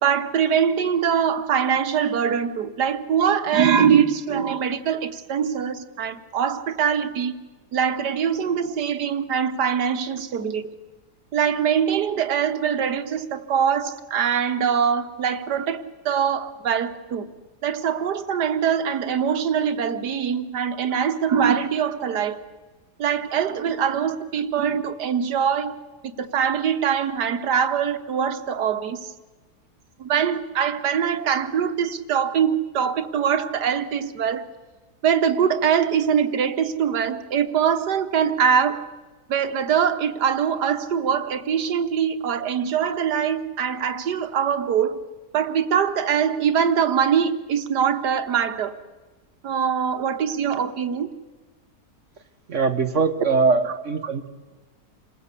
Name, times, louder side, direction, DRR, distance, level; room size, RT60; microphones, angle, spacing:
voice 1, 0.0-7.3 7.7-10.7 11.3-17.3 17.6-22.4 23.0-25.7 26.2-29.1 30.0-34.5 35.0-38.9 39.3-45.0 45.3-48.8 49.4-51.1 53.7-53.8, right 7 dB, 85° right, 10 dB, 1.8 m, -23 dB
voice 2, 52.5-54.3, right 4 dB, 50° right, 9 dB, 1.5 m, -21 dB
27.5 x 19.5 x 8.3 m, 1.2 s
omnidirectional pair, 1.7 m